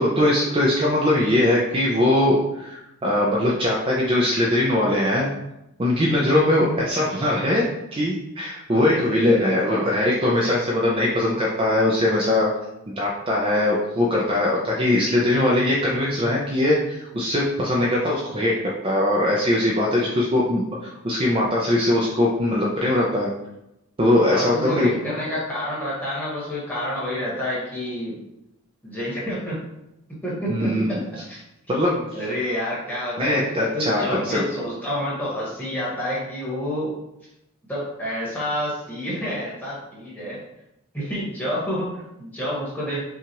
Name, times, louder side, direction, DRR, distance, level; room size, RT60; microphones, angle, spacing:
voice 1, 0.0-5.3 5.8-12.6 12.9-23.3 24.0-24.9 30.5-30.9 31.7-32.1 33.2-34.5, left 1 dB, 25° right, -4 dB, 0.5 m, -21 dB
voice 2, 8.9-9.2 24.3-28.2 28.8-29.7 30.2-31.0 31.3-31.4 32.1-37.0 37.7-40.4 40.9-43.0, equal, 5° left, -8 dB, 1.4 m, -29 dB
5.8 x 2.4 x 2.9 m, 0.87 s
head